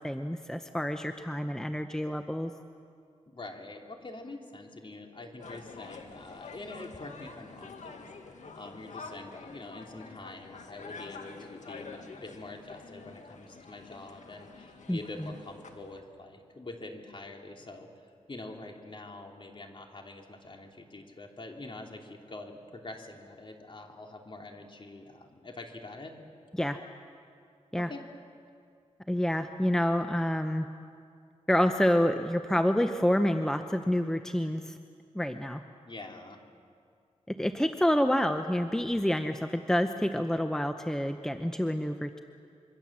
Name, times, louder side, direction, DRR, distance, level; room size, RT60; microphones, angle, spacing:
voice 1, 0.0-2.5 14.9-15.3 26.6-26.8 27.7-27.9 29.1-30.7 31.5-34.7 35.1-35.6 37.3-42.2, equal, 5° left, 7 dB, 0.9 m, -28 dB
voice 2, 3.3-8.0 8.4-17.9 18.3-26.2 27.7-28.0 35.8-36.4, left 2 dB, 45° left, 2 dB, 3.3 m, -45 dB
sound 1, 5.4-16.0, left 4 dB, 80° left, 2.0 m, -47 dB
26.0 x 24.0 x 7.5 m, 2.3 s
wide cardioid pair, 80°, 12 cm